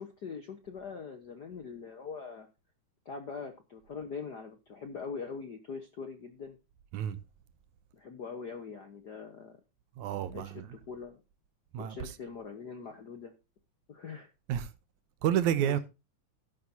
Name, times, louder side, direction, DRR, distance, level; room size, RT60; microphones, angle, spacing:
voice 1, 0.0-2.5 3.0-6.6 7.9-9.6 10.3-11.2 11.8-13.3 13.9-14.3 15.6-15.8, left 5 dB, 60° left, 1.0 m, -42 dB
voice 2, 10.0-10.7 11.7-12.1 14.5-14.7 15.2-15.8, right 10 dB, 75° right, 2.2 m, -30 dB
12.5 x 10.5 x 2.7 m
omnidirectional pair, 3.5 m